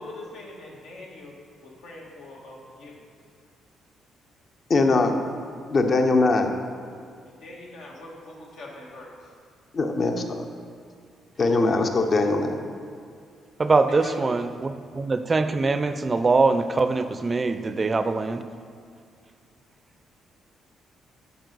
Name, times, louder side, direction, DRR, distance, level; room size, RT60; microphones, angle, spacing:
voice 1, 0.0-1.4 1.6-3.1 7.2-9.3 13.9-14.3, left 2 dB, 80° left, -2 dB, 1.4 m, -42 dB
voice 2, 4.7-5.2 5.7-6.5 9.7-10.4 11.4-12.5, left 3 dB, 45° left, 5 dB, 0.7 m, -21 dB
voice 3, 13.6-18.4, right 3 dB, 30° right, 10 dB, 0.4 m, -23 dB
9.2 x 4.8 x 4.0 m, 2.2 s
cardioid pair, 90°, 0 cm